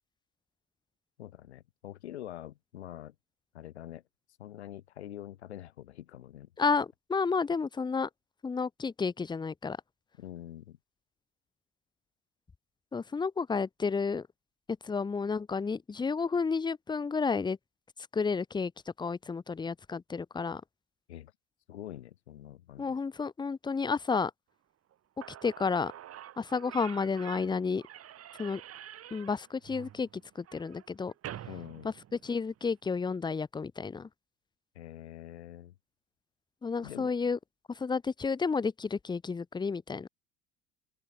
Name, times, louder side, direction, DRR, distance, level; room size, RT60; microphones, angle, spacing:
voice 1, 1.2-3.1 3.5-4.0 4.4-6.5 10.2-10.8 21.1-21.3 21.7-22.9 31.5-31.9 34.7-35.7 36.8-37.1, left 12 dB, 90° left, 1.2 m, -45 dB
voice 2, 6.6-8.1 8.4-9.8 12.9-14.3 14.8-17.6 18.1-18.7 19.0-20.6 22.8-24.3 25.4-25.9 26.4-27.8 28.4-28.6 29.1-31.1 31.8-31.9 32.2-34.1 36.6-37.4 37.7-40.1, left 5 dB, 15° left, 0.6 m, -31 dB
Slam / Squeak, 24.9-25.0 25.2-32.7, right 11 dB, 45° right, 3.5 m, -47 dB
open air
hypercardioid pair, 70°, 32 cm